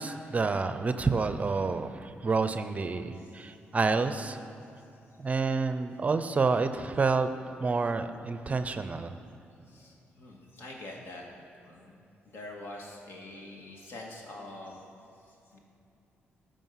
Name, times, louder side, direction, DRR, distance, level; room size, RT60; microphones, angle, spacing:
voice 1, 0.0-4.4 5.2-7.3 7.6-9.1, right 4 dB, 35° right, 10 dB, 0.5 m, -28 dB
voice 2, 3.1-3.5 9.7-14.8 15.3-15.6, left 2 dB, 65° left, 0 dB, 1.9 m, -46 dB
13.0 x 5.2 x 5.7 m, 2.7 s
cardioid pair, 85°, 4 cm